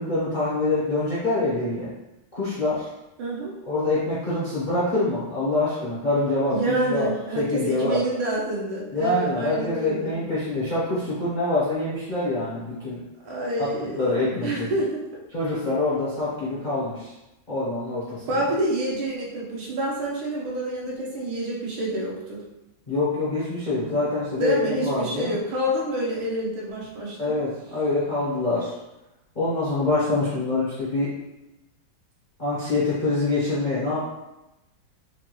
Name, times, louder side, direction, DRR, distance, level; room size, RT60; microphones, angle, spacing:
voice 1, 0.0-1.9 2.3-2.9 3.7-8.0 8.9-13.0 13.6-13.7 14.0-14.7 15.3-17.1 17.5-18.2 22.9-25.3 27.2-28.7 29.3-31.1 32.4-34.0, left 2 dB, 50° left, -8 dB, 0.5 m, -25 dB
voice 2, 3.2-3.5 6.5-10.2 13.2-15.0 18.3-22.4 24.4-27.4, right 1 dB, 85° right, -4 dB, 1.7 m, -28 dB
4.5 x 2.2 x 3.0 m, 0.94 s
omnidirectional pair, 2.2 m